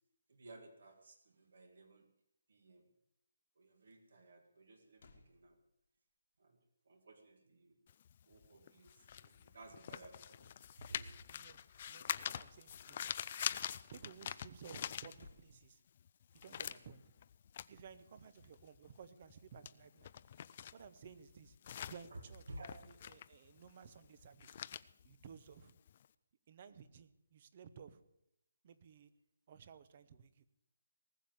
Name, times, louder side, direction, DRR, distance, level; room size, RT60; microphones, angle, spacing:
voice 1, 0.3-2.1 2.5-2.9 3.6-5.6 6.4-6.6 6.9-7.8 8.3-10.5 10.8-11.1 22.1-22.2 22.5-22.7, right 1 dB, 65° right, 6 dB, 1.9 m, -56 dB
sound 1, 4.5-4.6 5.0-6.1 11.6-12.5 14.8-16.4, left 4 dB, 50° left, 1.6 m, -65 dB
sound 2, 7.9-15.7 16.0-26.1, left 9 dB, 35° left, 0.4 m, -45 dB
voice 2, 11.3-11.6 11.8-13.1 13.9-15.8 16.4-17.1 17.7-20.1 20.7-21.6 21.9-24.7 25.0-25.7 26.5-28.0 28.6-29.1 29.5-30.4, right 7 dB, 35° right, 14 dB, 0.9 m, -56 dB
19.0 x 7.2 x 7.7 m, 0.79 s
hypercardioid pair, 170°, 0 cm